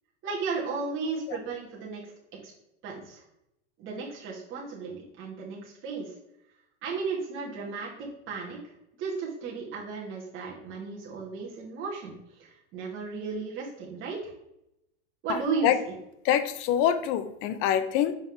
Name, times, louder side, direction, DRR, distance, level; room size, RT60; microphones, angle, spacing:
voice 1, 0.2-2.1 2.4-2.5 2.8-3.2 3.8-6.1 6.8-14.3 15.2-15.9, right 4 dB, 35° right, -4 dB, 1.9 m, -34 dB
voice 2, 16.2-18.1, left 10 dB, 40° left, 11 dB, 0.6 m, -25 dB
5.5 x 4.4 x 4.5 m, 0.84 s
supercardioid pair, 140°, 33 cm